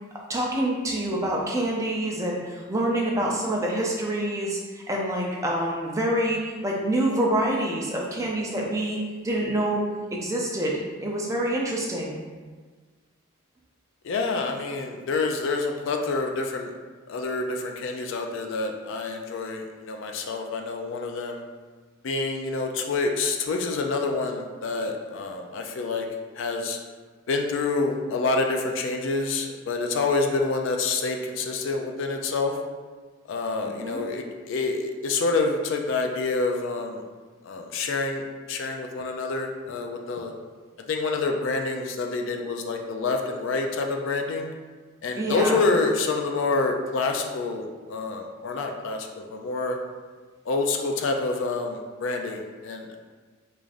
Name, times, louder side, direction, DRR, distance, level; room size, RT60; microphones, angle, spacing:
voice 1, 0.3-9.0 9.2-9.8 10.1-12.2 33.8-34.0 45.2-45.6, right 1 dB, 15° right, -2 dB, 0.4 m, -26 dB
voice 2, 14.0-16.7 17.1-21.4 22.0-26.1 26.3-26.8 27.3-32.6 33.3-37.0 37.4-40.3 40.9-44.5 45.0-49.8 50.4-53.0, left 3 dB, 60° left, 3 dB, 0.3 m, -27 dB
4.8 x 2.4 x 2.4 m, 1.4 s
head